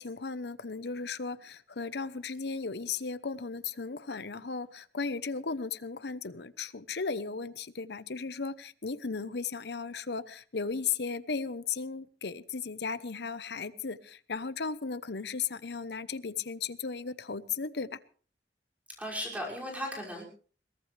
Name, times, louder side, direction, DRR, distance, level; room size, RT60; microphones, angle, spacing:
voice 1, 0.0-18.0, left 5 dB, 70° left, 0.9 m, -36 dB
voice 2, 19.0-20.2, equal, 10° right, 6.0 m, -36 dB
22.5 x 19.0 x 3.4 m
head